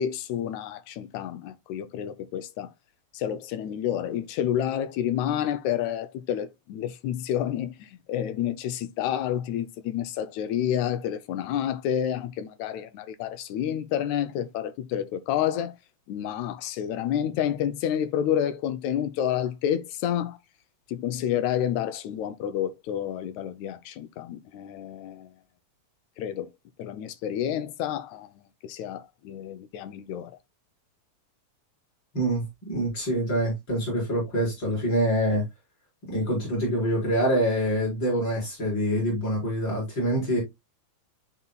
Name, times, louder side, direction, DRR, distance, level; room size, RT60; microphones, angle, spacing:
voice 1, 0.0-2.7 3.1-15.8 16.1-20.4 20.9-25.3 26.2-26.5 26.8-30.3, left 10 dB, 75° left, 1.8 m, -29 dB
voice 2, 32.1-35.4 36.1-40.4, equal, 35° left, 5.0 m, -25 dB
12.0 x 4.4 x 2.2 m
omnidirectional pair, 3.5 m